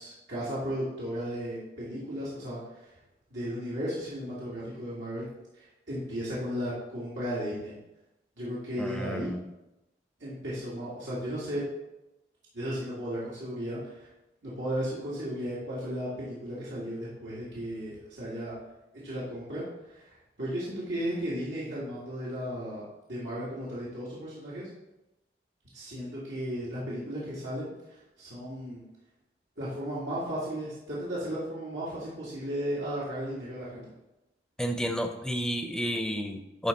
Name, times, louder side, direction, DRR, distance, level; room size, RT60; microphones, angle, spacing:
voice 1, 0.0-2.9 3.3-5.3 5.5-7.8 8.4-9.3 10.2-11.6 12.5-14.1 14.4-18.5 19.0-22.8 23.1-24.7 25.7-28.8 29.6-33.9, equal, 85° right, -9 dB, 2.1 m, -35 dB
voice 2, 8.8-9.4 34.6-36.7, equal, 5° left, 6 dB, 0.5 m, -31 dB
10.5 x 3.5 x 4.1 m, 0.94 s
head